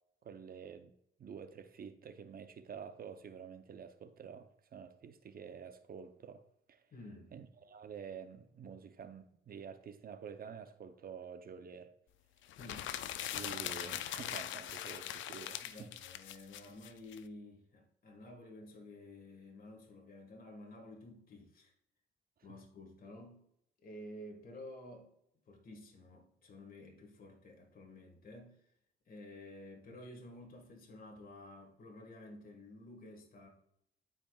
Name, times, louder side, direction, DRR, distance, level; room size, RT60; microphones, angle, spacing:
voice 1, 0.2-0.9 1.2-6.4 6.7-6.8 7.3-11.9 13.3-15.9, right 7 dB, 50° right, 0.7 m, -49 dB
voice 2, 6.9-7.3 12.5-12.9 15.6-21.7 22.4-23.5 23.8-25.1 25.5-28.7 29.1-33.5, left 1 dB, 45° left, 1.8 m, -52 dB
sound 1, 12.5-17.2, left 11 dB, 75° left, 0.5 m, -41 dB
12.0 x 5.0 x 2.4 m
cardioid pair, 90°, 20 cm